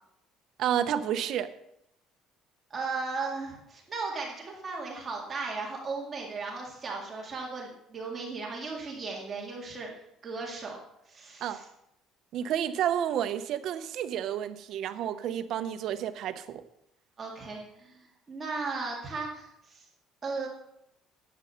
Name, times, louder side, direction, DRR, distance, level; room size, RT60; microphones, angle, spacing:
voice 1, 0.6-1.5 11.4-11.6 12.3-16.6, right 10 dB, 50° right, 0.7 m, -30 dB
voice 2, 2.7-10.8 11.1-11.6 17.2-19.9 20.2-20.5, right 4 dB, 20° right, 2.0 m, -36 dB
10.5 x 8.5 x 5.6 m
cardioid pair, 175°, 0 cm